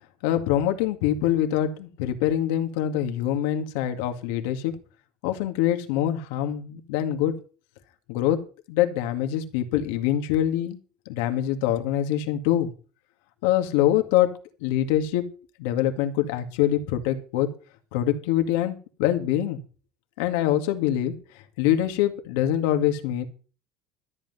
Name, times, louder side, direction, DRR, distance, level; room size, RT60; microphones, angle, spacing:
voice 1, 0.2-4.7 5.2-7.3 8.1-8.4 8.7-10.8 11.1-12.7 13.4-14.3 14.6-15.2 15.6-17.5 17.9-19.6 20.2-21.2 21.6-23.2, left 12 dB, 85° left, 6 dB, 2.1 m, -24 dB
13.5 x 5.7 x 9.5 m, 0.37 s
cardioid pair, 140°, 0 cm